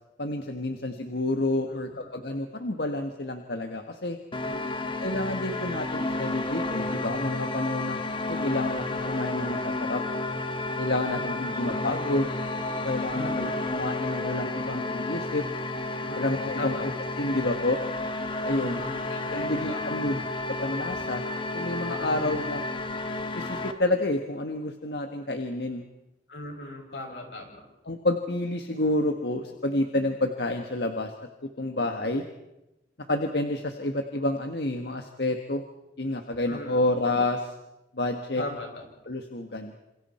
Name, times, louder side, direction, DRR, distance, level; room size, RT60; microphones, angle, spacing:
voice 1, 0.2-4.2 5.0-8.0 8.3-10.0 10.8-12.3 12.8-15.4 16.1-16.9 17.2-17.8 18.4-18.8 19.3-20.2 20.6-21.2 21.5-22.6 23.4-25.8 27.9-32.2 33.1-35.6 36.0-37.5 37.9-38.4 39.1-39.7, left 2 dB, 65° left, 5 dB, 1.5 m, -29 dB
voice 2, 1.7-2.2 4.4-5.0 11.1-11.7 13.1-13.8 16.0-16.9 18.5-19.9 21.9-22.5 26.3-27.7 36.5-36.8 38.4-38.9, left 1 dB, 85° left, 1 dB, 6.8 m, -39 dB
sound 1, 4.3-23.7, left 2 dB, 30° left, 1.6 m, -31 dB
28.5 x 27.5 x 4.4 m, 0.95 s
head